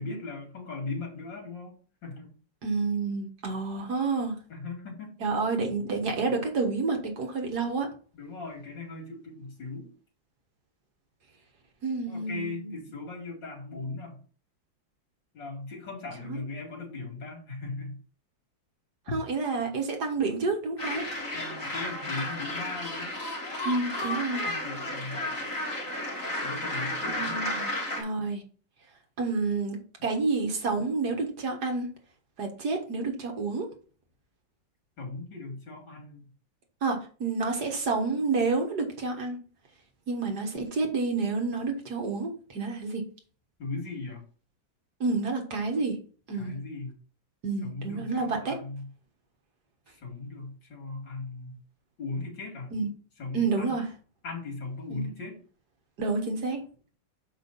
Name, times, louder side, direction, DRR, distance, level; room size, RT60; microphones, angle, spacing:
voice 1, 0.0-1.7 2.0-2.3 4.5-5.1 8.1-9.9 12.1-14.2 15.3-18.0 19.1-19.2 21.3-23.2 24.5-25.4 26.4-27.4 35.0-36.2 43.6-44.2 46.3-46.9 47.6-48.8 50.0-51.6 52.0-52.7 53.2-53.7 54.2-55.4, left 3 dB, 70° left, 1 dB, 3.2 m, -38 dB
voice 2, 2.6-4.4 5.2-7.9 11.8-12.7 16.2-16.4 19.1-21.0 23.6-24.4 27.1-27.7 28.0-28.4 29.2-31.9 32.4-33.7 36.8-39.4 40.1-43.0 45.0-46.0 46.3-46.6 47.4-48.6 52.7-52.9 53.3-53.9 54.9-55.1 56.0-56.6, right 3 dB, 60° right, 3 dB, 1.9 m, -29 dB
sound 1, 20.8-28.0, left 1 dB, 45° left, 2.6 m, -33 dB
6.6 x 5.6 x 4.1 m, 0.39 s
omnidirectional pair, 2.0 m